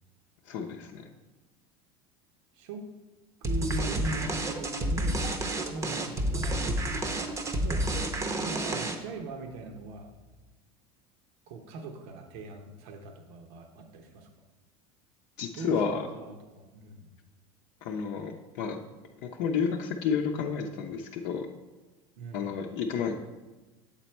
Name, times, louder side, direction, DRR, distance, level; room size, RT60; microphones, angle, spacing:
voice 1, 0.5-1.1 15.4-16.1 17.8-18.8 19.4-21.5 22.3-23.2, left 6 dB, 65° left, 1 dB, 0.6 m, -31 dB
voice 2, 2.5-2.8 3.4-5.3 5.7-6.9 7.6-7.9 8.4-10.1 11.5-14.3 15.5-17.1 22.2-22.4, right 3 dB, 75° right, 4 dB, 0.9 m, -40 dB
sound 1, 3.4-9.2, right 1 dB, 20° right, 0.7 m, -30 dB
7.4 x 4.1 x 4.4 m, 1.2 s
supercardioid pair, 125°, 14 cm